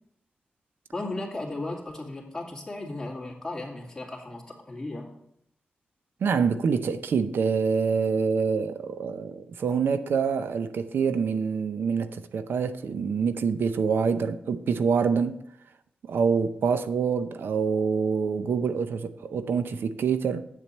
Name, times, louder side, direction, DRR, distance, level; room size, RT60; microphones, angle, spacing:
voice 1, 0.9-5.1, left 2 dB, 15° left, 2.5 m, -35 dB
voice 2, 6.2-15.4 16.1-20.5, right 5 dB, 90° right, 0.5 m, -26 dB
8.4 x 7.3 x 4.3 m
wide cardioid pair, 100°, 4 cm